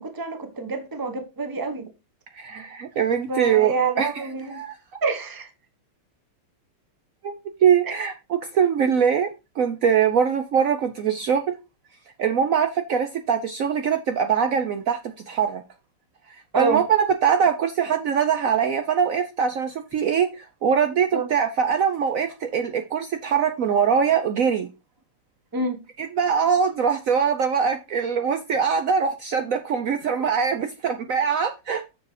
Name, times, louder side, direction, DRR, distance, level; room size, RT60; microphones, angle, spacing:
voice 1, 0.0-1.9 3.3-4.6 5.0-5.5 16.5-16.8 21.1-21.3 25.5-25.8, right 4 dB, 20° right, 0.6 m, -27 dB
voice 2, 2.3-4.8 7.2-9.3 9.6-11.6 12.2-15.0 15.3-15.6 16.3-24.7 26.0-31.8, right 7 dB, 90° right, 0.7 m, -22 dB
7.1 x 5.3 x 4.9 m
omnidirectional pair, 2.4 m